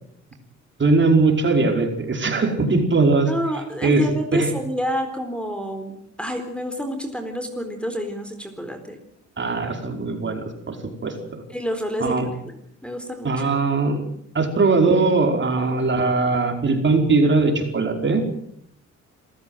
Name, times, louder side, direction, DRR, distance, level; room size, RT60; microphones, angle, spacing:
voice 1, 0.8-3.3 3.8-4.1 4.3-4.5 9.4-10.8 11.0-11.4 12.0-12.3 13.2-14.0 14.3-18.2, right 3 dB, 40° right, 3 dB, 5.2 m, -20 dB
voice 2, 3.3-9.0 11.5-13.4, equal, 5° left, 7 dB, 4.2 m, -28 dB
27.0 x 15.0 x 8.1 m, 0.72 s
cardioid pair, 90°, 30 cm